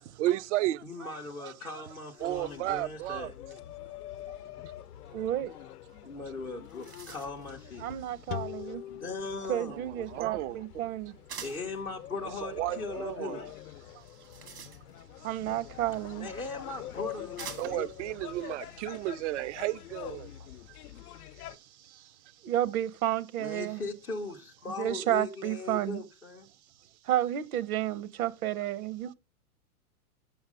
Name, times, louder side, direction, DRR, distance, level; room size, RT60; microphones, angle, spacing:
voice 1, 0.0-1.1 1.4-1.8 2.2-3.3 9.7-10.6 12.4-13.5 13.9-14.0 17.6-20.3, right 16 dB, 50° right, 0.5 m, -33 dB
voice 2, 0.8-3.3 6.0-7.8 8.9-9.8 11.4-13.4 16.2-17.9 23.4-26.5, left 3 dB, 10° left, 0.4 m, -39 dB
sound 1, 2.2-21.6, left 13 dB, 75° left, 0.7 m, -46 dB
voice 3, 5.1-5.5 7.8-8.8 9.5-11.1 15.2-16.3 21.5-21.6 21.9-22.0 22.4-23.8 24.8-26.0 27.0-29.1, right 12 dB, 70° right, 0.9 m, -31 dB
sound 2, 6.2-6.3 6.5-7.5 11.3-11.7 14.0-15.2 16.3-16.4 17.4-17.9, right 7 dB, 90° right, 2.1 m, -45 dB
sound 3, 8.3-11.6, left 12 dB, 40° left, 0.7 m, -44 dB
7.3 x 5.7 x 4.8 m
hypercardioid pair, 135°, 45 cm